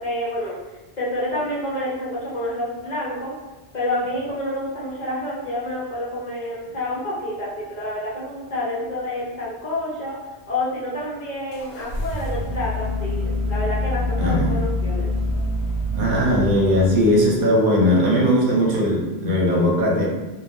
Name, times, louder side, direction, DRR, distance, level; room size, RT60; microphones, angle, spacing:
voice 1, 0.0-0.6 1.0-3.3 3.7-10.2 10.5-15.1, left 1 dB, 50° left, -7 dB, 0.7 m, -28 dB
sound 1, 11.5-17.4, left 1 dB, 80° left, 0.8 m, -26 dB
voice 2, 14.2-14.5 15.9-20.0, equal, 60° right, -4 dB, 0.8 m, -19 dB
2.5 x 2.1 x 3.3 m, 1.1 s
omnidirectional pair, 1.1 m